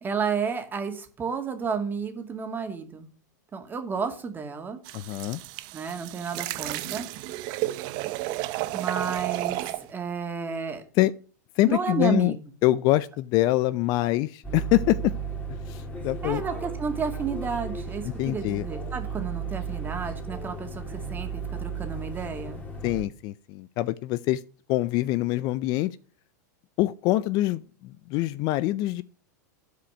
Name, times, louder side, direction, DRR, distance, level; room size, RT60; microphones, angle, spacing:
voice 1, 0.0-3.1 3.5-4.8 5.7-7.1 8.7-10.8 11.7-12.3 16.2-22.6, right 5 dB, 20° right, 2.1 m, -31 dB
sound 1, 4.8-9.8, right 17 dB, 50° right, 0.7 m, -32 dB
voice 2, 4.9-5.4 11.0-11.1 11.6-12.3 12.6-15.1 15.5-16.4 18.0-18.7 22.8-24.4 24.7-26.0 26.8-29.0, left 17 dB, 45° left, 0.5 m, -25 dB
sound 2, 14.4-23.0, right 5 dB, 15° left, 2.5 m, -34 dB
12.5 x 5.0 x 6.3 m
hypercardioid pair, 115°, 10 cm